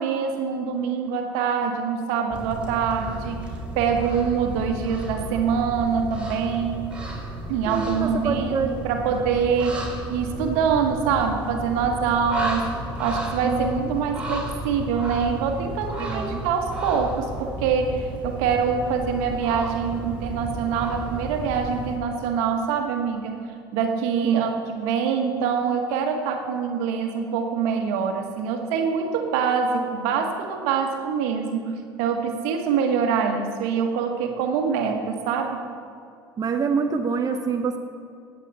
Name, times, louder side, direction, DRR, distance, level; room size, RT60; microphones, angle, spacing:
voice 1, 0.0-3.5 3.7-6.9 7.5-9.8 10.1-12.6 13.0-23.4 23.7-35.6, right 6 dB, 70° right, 4 dB, 1.5 m, -25 dB
sound 1, 2.3-22.0, right 1 dB, 10° right, 3.8 m, -33 dB
voice 2, 7.7-8.7 13.4-13.9 16.0-16.4 24.2-24.4 36.4-37.8, right 5 dB, 30° right, 5 dB, 0.9 m, -26 dB
19.5 x 8.4 x 4.3 m, 2.4 s
hypercardioid pair, 65°, 12 cm